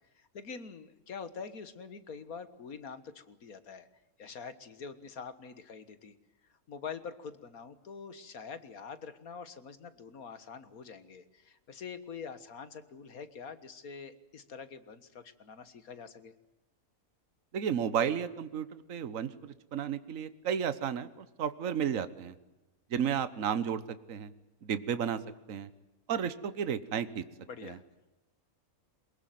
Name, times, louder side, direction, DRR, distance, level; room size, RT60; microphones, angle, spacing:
voice 1, 0.2-3.9 4.2-6.2 6.7-16.3 27.4-27.8, left 6 dB, 75° left, 12 dB, 2.0 m, -45 dB
voice 2, 17.5-22.3 22.9-23.8 24.1-24.3 24.6-25.2 25.5-25.7 26.1-27.2 27.6-27.8, right 8 dB, 65° right, 13 dB, 1.5 m, -32 dB
23.5 x 21.0 x 9.3 m, 1.0 s
omnidirectional pair, 1.5 m